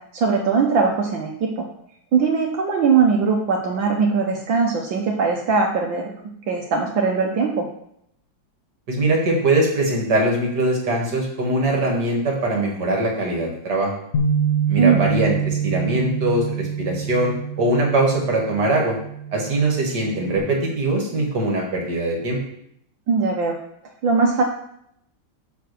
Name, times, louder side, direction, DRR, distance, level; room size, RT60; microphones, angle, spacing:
voice 1, 0.1-1.6 2.1-6.1 6.5-7.7 14.7-15.0 23.1-23.6 24.0-24.4, right 5 dB, 70° right, 0 dB, 1.6 m, -20 dB
voice 2, 8.9-13.9 14.7-19.0 19.3-22.4, right 2 dB, 50° right, -1 dB, 2.1 m, -22 dB
Bass guitar, 14.1-20.4, right 6 dB, 55° left, 0.9 m, -26 dB
6.4 x 4.6 x 6.7 m, 0.72 s
omnidirectional pair, 2.3 m